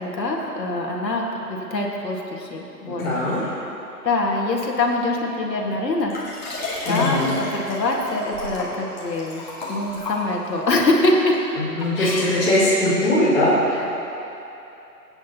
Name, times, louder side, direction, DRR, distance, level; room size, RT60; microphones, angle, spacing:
voice 1, 0.0-3.0 3.6-3.7 4.0-6.1 6.9-9.4 9.7-11.4 12.0-12.3, left 2 dB, 80° left, -1 dB, 2.0 m, -24 dB
voice 2, 2.9-3.4 6.8-7.3 11.5-13.5 13.8-13.9, left 1 dB, 5° left, -16 dB, 2.3 m, -21 dB
Liquid, 6.1-10.7 11.3-11.4, left 2 dB, 25° left, 1.8 m, -31 dB
20.0 x 9.3 x 2.9 m, 2.9 s
hypercardioid pair, 175°, 49 cm